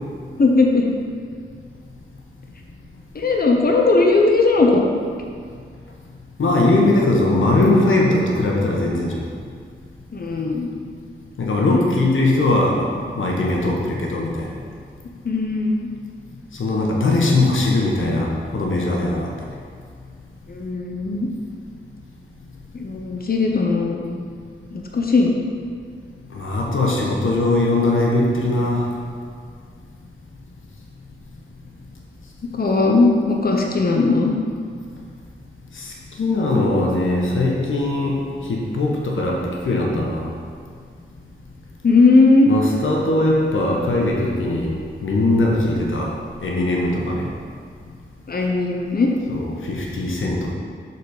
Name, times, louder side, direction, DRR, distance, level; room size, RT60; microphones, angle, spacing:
voice 1, 0.4-0.8 3.1-4.8 10.1-10.7 11.6-11.8 15.2-15.9 20.5-21.3 22.7-24.2 24.7-25.3 32.5-34.3 41.8-42.5 48.3-49.1, left 3 dB, 50° left, 0 dB, 0.8 m, -18 dB
voice 2, 6.4-9.2 11.4-14.5 16.6-19.3 26.3-28.8 35.8-38.2 38.5-40.3 42.5-44.7 45.0-46.1 46.4-47.3 49.3-50.5, left 2 dB, 85° left, -2 dB, 1.0 m, -20 dB
6.8 x 4.1 x 4.9 m, 2.1 s
cardioid pair, 45°, 20 cm